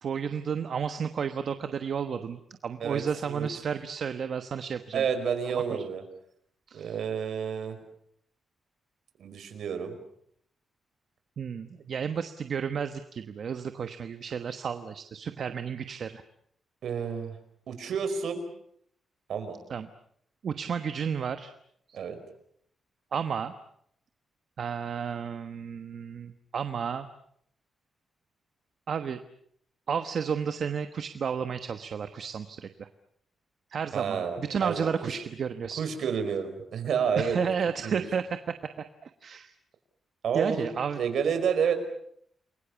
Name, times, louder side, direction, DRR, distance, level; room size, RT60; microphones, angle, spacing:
voice 1, 0.0-5.0 5.7-5.9 6.7-6.9 11.4-16.2 19.7-19.9 20.4-21.5 21.9-22.0 23.1-23.5 24.6-27.1 28.9-29.2 29.9-32.9 33.7-35.8 37.2-38.6 39.0-39.5 40.3-41.0, right 7 dB, 55° right, 9 dB, 1.2 m, -32 dB
voice 2, 2.8-3.5 4.9-6.0 6.7-7.8 9.2-10.0 16.8-17.3 17.7-18.4 19.3-19.6 21.9-22.2 33.9-34.9 35.8-37.4 37.8-38.1 40.2-41.7, right 7 dB, 70° right, 7 dB, 5.0 m, -30 dB
29.5 x 22.0 x 7.1 m, 0.68 s
wide cardioid pair, 140°, 0 cm